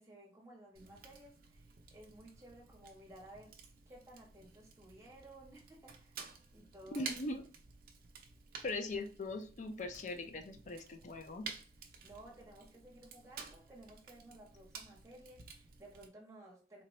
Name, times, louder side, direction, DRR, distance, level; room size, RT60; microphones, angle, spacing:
voice 1, 0.0-3.6 3.9-7.1 12.0-16.8, right 1 dB, 15° right, -3 dB, 1.0 m, -56 dB
Fire, 0.8-16.1, right 5 dB, 55° right, 0.5 m, -52 dB
voice 2, 6.9-7.4 8.6-11.5, left 2 dB, 45° left, 7 dB, 0.4 m, -40 dB
3.8 x 2.2 x 3.0 m, 0.38 s
head